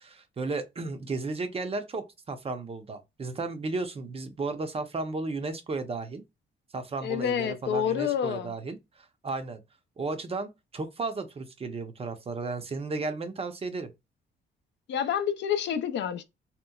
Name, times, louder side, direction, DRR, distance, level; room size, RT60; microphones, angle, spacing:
voice 1, 0.0-6.2 6.7-9.6 10.0-13.9, right 3 dB, 30° right, 0.5 m, -34 dB
voice 2, 7.0-8.5 14.9-16.2, left 9 dB, 65° left, 0.4 m, -28 dB
2.9 x 2.0 x 2.2 m
cardioid pair, 90°, 20 cm